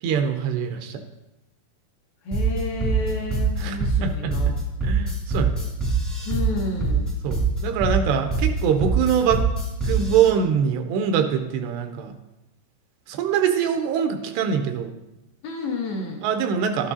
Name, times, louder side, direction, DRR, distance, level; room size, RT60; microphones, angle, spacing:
voice 1, 0.0-1.0 3.6-4.4 4.8-5.7 7.2-9.5 9.8-12.1 13.1-15.0 16.2-16.9, right 7 dB, 80° right, 6 dB, 2.6 m, -24 dB
voice 2, 2.3-4.6 6.3-7.1 15.4-16.2, left 2 dB, 70° left, -1 dB, 2.4 m, -30 dB
sound 1, 2.3-10.3, right 4 dB, ahead, 0.7 m, -23 dB
12.5 x 8.6 x 2.7 m, 0.96 s
omnidirectional pair, 5.0 m